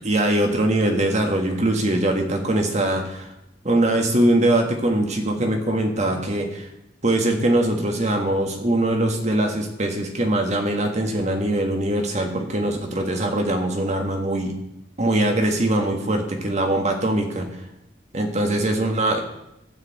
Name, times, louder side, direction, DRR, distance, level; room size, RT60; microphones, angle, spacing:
voice 1, 0.0-3.3 3.6-6.7 7.0-14.5 15.0-17.5 18.1-19.2, right 1 dB, 40° right, 3 dB, 1.6 m, -22 dB
12.5 x 5.0 x 8.0 m, 0.87 s
head